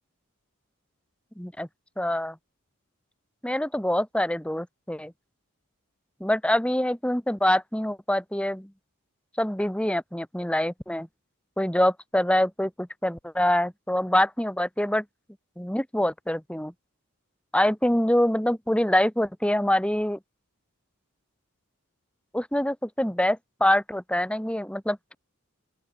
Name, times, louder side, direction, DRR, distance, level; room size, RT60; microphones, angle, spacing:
voice 1, 1.4-1.7 2.0-2.4 3.4-5.1 6.2-8.7 9.4-11.1 11.6-15.0 15.6-16.7 17.5-20.2 22.3-25.1, left 1 dB, 5° left, 2.2 m, -25 dB
open air
head